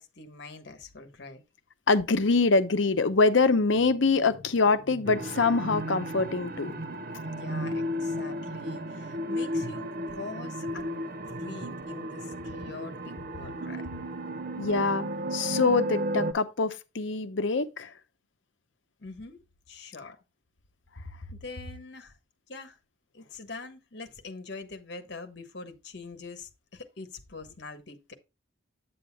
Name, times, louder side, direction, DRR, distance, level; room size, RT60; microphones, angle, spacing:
voice 1, 0.0-1.4 7.2-11.1 11.3-13.9 19.0-19.4 19.7-20.2 21.3-22.2 22.5-22.8 23.1-28.1, left 3 dB, 55° left, 1.3 m, -43 dB
voice 2, 1.9-6.7 14.6-17.9, left 4 dB, 75° left, 0.8 m, -24 dB
sound 1, 5.1-16.3, equal, 50° right, 0.8 m, -34 dB
8.6 x 7.9 x 2.2 m
head